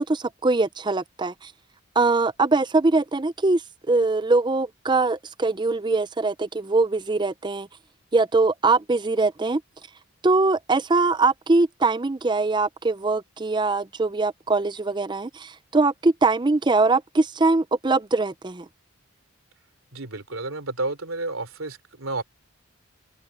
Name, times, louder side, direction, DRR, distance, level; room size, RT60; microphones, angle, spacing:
voice 1, 0.0-1.5 2.0-3.6 3.9-7.7 8.1-9.6 10.2-18.7, right 3 dB, 20° right, 0.5 m, -22 dB
voice 2, 19.9-22.2, right 2 dB, 80° right, 3.2 m, -31 dB
head